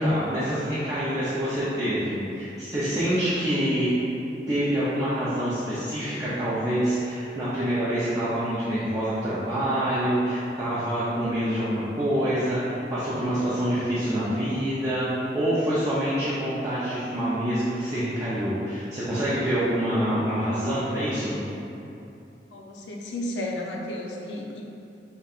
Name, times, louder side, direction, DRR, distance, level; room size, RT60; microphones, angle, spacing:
voice 1, 0.0-3.9 4.5-21.4, equal, 20° right, -11 dB, 0.5 m, -26 dB
voice 2, 22.5-24.6, left 1 dB, 80° left, -2 dB, 0.5 m, -33 dB
5.1 x 2.1 x 2.4 m, 2.7 s
head